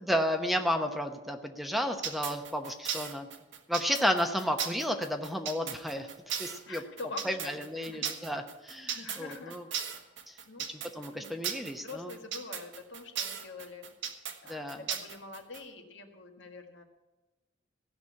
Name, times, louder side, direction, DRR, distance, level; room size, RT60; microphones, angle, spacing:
voice 1, 0.0-3.3 3.7-6.1 6.4-6.8 7.2-9.6 10.3-10.4 11.0-12.1 14.5-14.8, equal, ahead, 5 dB, 0.9 m, -32 dB
sound 1, 2.0-15.6, right 8 dB, 75° right, 1.6 m, -36 dB
voice 2, 6.6-8.3 8.9-10.0 10.4-13.9 14.4-16.8, left 3 dB, 75° left, 4 dB, 1.8 m, -46 dB
16.5 x 6.2 x 8.4 m, 1.1 s
head